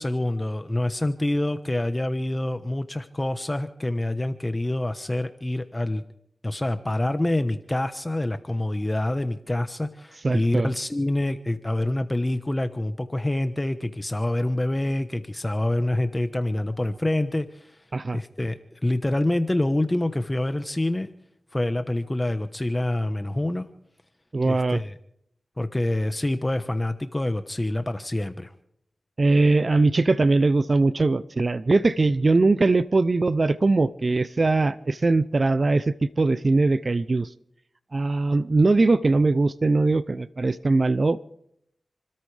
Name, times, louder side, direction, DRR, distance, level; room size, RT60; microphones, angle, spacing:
voice 1, 0.0-6.0 6.4-17.8 18.1-18.6 18.8-21.1 21.5-23.6 24.4-24.9 25.6-28.5, left 1 dB, 25° left, 9 dB, 1.1 m, -26 dB
voice 2, 10.2-10.7 17.9-18.2 24.3-24.8 29.2-37.3 37.9-41.2, right 3 dB, 50° right, 15 dB, 0.6 m, -21 dB
29.0 x 13.5 x 3.4 m, 0.72 s
cardioid pair, 40°, 0 cm